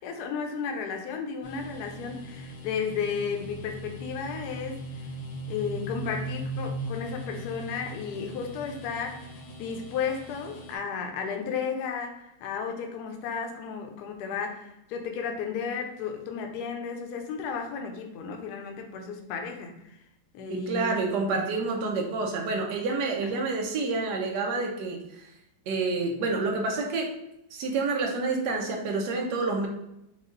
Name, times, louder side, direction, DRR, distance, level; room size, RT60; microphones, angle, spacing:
voice 1, 0.0-5.1 5.5-20.0 20.3-20.9 23.2-23.3, left 6 dB, 70° left, 3 dB, 1.1 m, -34 dB
sound 1, 1.4-10.8, right 1 dB, 85° left, 1.7 m, -39 dB
voice 2, 20.7-25.3 25.7-27.1 27.5-29.7, right 3 dB, 65° right, 1 dB, 1.3 m, -28 dB
5.0 x 2.4 x 3.8 m, 0.86 s
omnidirectional pair, 2.1 m